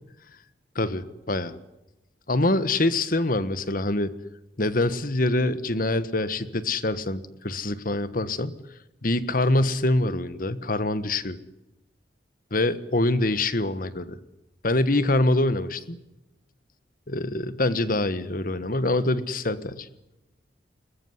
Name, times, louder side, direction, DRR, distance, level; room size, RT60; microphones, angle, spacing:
voice 1, 0.7-1.6 2.3-4.1 4.6-8.5 9.0-11.4 12.5-14.2 14.6-16.0 17.1-19.9, left 2 dB, 50° left, 14 dB, 1.4 m, -25 dB
22.0 x 20.5 x 9.7 m, 0.92 s
head